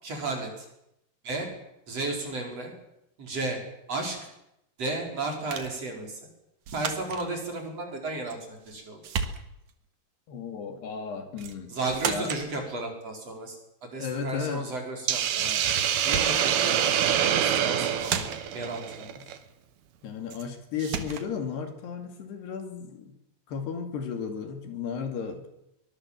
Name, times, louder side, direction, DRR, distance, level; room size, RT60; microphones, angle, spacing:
voice 1, 0.0-0.7 1.2-1.5 1.9-2.7 3.2-3.6 3.9-4.2 4.8-6.2 6.7-8.4 8.7-9.0 11.7-13.6 13.8-15.6 16.0-16.8 17.2-18.2 18.5-19.1, right 2 dB, 35° right, 1 dB, 5.8 m, -33 dB
sound 1, 5.5-5.8 6.7-7.3 8.3-8.8 9.0-9.7 11.4-11.6 11.9-12.5 15.5-15.7 16.0-16.5 17.4-17.7 18.0-18.6 20.3-20.5 20.8-21.3, right 7 dB, 55° right, 2.5 m, -34 dB
voice 2, 10.3-11.7 12.0-12.3 14.0-14.7 19.2-19.3 20.0-23.2 23.5-25.5, left 6 dB, 75° left, 6 dB, 4.6 m, -34 dB
Hiss, 15.1-19.4, right 9 dB, 70° right, 3.4 m, -25 dB
23.5 x 21.0 x 7.6 m, 0.84 s
omnidirectional pair, 4.8 m